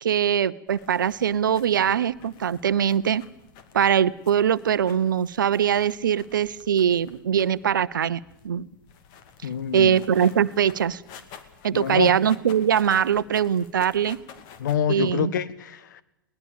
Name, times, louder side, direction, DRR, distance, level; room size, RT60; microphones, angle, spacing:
voice 1, 0.0-3.2 3.7-8.7 9.7-11.0 11.6-14.2 14.9-15.3, right 8 dB, 70° right, 18 dB, 0.9 m, -22 dB
sound 1, 0.7-14.8, left 7 dB, 40° left, 2.3 m, -50 dB
voice 2, 9.4-10.0 11.7-12.1 14.6-16.0, left 8 dB, 60° left, 14 dB, 1.4 m, -27 dB
22.0 x 19.0 x 7.1 m, 0.87 s
figure-of-eight pair, 105°, 11 cm